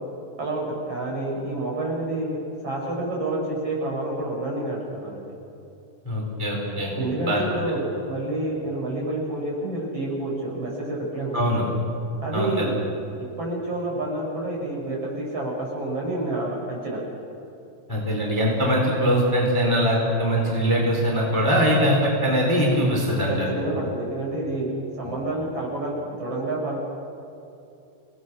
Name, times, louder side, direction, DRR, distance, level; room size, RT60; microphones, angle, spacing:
voice 1, 0.4-5.3 7.0-11.7 12.2-12.7 13.4-17.0 23.3-26.8, right 2 dB, 45° right, -3 dB, 7.5 m, -29 dB
voice 2, 6.0-6.9 7.2-7.4 11.3-11.6 12.3-12.7 17.9-23.5, equal, 5° left, -2 dB, 3.9 m, -22 dB
27.0 x 19.5 x 6.4 m, 2.8 s
omnidirectional pair, 3.8 m